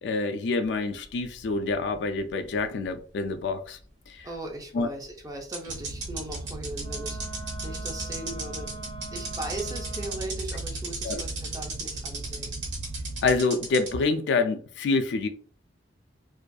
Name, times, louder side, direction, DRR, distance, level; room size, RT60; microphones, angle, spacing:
voice 1, 0.0-3.8 4.1-4.3 4.7-4.9 11.0-11.2 13.2-15.3, left 3 dB, 65° left, 0.3 m, -27 dB
sound 1, 1.0-2.6 2.8-2.9 4.8-4.9 5.5-13.9, right 4 dB, 65° right, 0.9 m, -35 dB
voice 2, 4.2-8.7 9.1-12.5, right 2 dB, 20° right, 0.5 m, -38 dB
sound 2, 5.6-13.4, right 2 dB, 85° right, 0.3 m, -38 dB
Wind instrument woodwind instrument, 6.8-10.4, right 2 dB, 40° right, 1.0 m, -43 dB
2.5 x 2.3 x 2.2 m
head